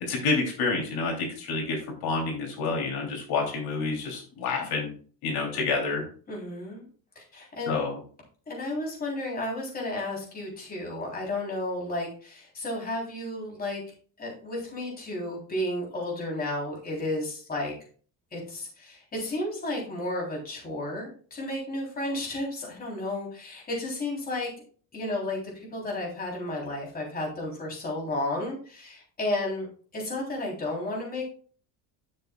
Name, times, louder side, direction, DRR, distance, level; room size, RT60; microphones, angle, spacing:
voice 1, 0.1-4.9 5.2-6.0 7.6-8.0, left 4 dB, 60° left, 0 dB, 3.1 m, -28 dB
voice 2, 6.3-6.9 7.2-7.8 8.5-13.8 14.2-17.7 18.3-24.5 24.9-29.7 29.9-31.3, left 1 dB, 20° left, -2 dB, 3.5 m, -32 dB
12.0 x 7.0 x 2.3 m, 0.42 s
cardioid pair, 155°, 41 cm